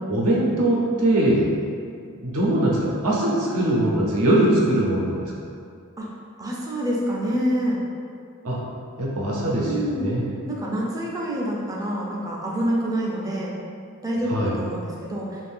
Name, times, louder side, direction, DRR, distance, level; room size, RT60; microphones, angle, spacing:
voice 1, 0.1-1.5 2.1-5.3 8.4-8.6 9.0-10.2 14.3-14.6, right 1 dB, 70° right, -4 dB, 0.7 m, -21 dB
voice 2, 6.4-7.8 9.6-10.1 10.5-13.6 14.0-15.4, equal, 15° right, -4 dB, 0.4 m, -27 dB
2.6 x 2.4 x 3.4 m, 2.3 s
head